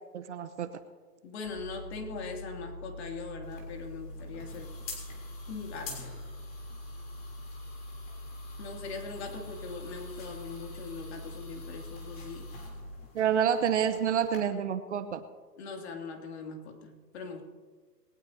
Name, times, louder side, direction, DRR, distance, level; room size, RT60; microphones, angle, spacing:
voice 1, 0.1-0.7 13.1-15.2, right 8 dB, 45° right, 10 dB, 1.0 m, -28 dB
voice 2, 1.2-4.7 5.5-6.0 8.6-12.5 15.6-17.4, left 4 dB, 40° left, 3 dB, 2.8 m, -41 dB
sound 1, 1.4-12.9, left 1 dB, 25° right, 5.0 m, -44 dB
sound 2, 3.4-14.4, left 4 dB, 20° left, 3.3 m, -49 dB
21.0 x 19.0 x 2.8 m, 1.4 s
hypercardioid pair, 155°, 49 cm